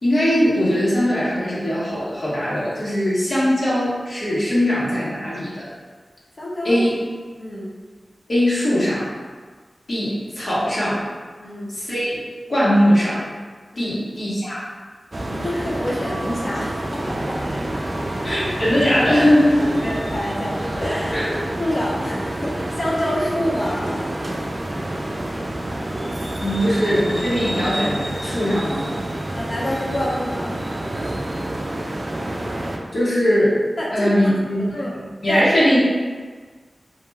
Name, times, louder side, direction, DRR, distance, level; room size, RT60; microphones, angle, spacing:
voice 1, 0.0-5.7 6.6-6.9 8.3-9.1 9.9-11.0 11.7-12.2 12.5-13.2 13.8-14.6 18.2-19.8 21.1-21.3 26.3-28.9 32.9-33.6 33.9-34.6 35.2-35.8, equal, 70° left, -10 dB, 1.1 m, -20 dB
voice 2, 6.4-6.8 7.4-7.7 11.4-11.7 13.7-13.9 15.2-17.4 18.0-18.1 19.6-21.3 21.6-24.4 29.3-30.6 31.0-31.1 33.8-35.0 35.3-35.5, left 1 dB, 45° left, -4 dB, 0.7 m, -27 dB
sound 1, 15.1-32.8, right 1 dB, 45° right, 0.3 m, -28 dB
2.4 x 2.2 x 3.1 m, 1.5 s
cardioid pair, 50°, 0 cm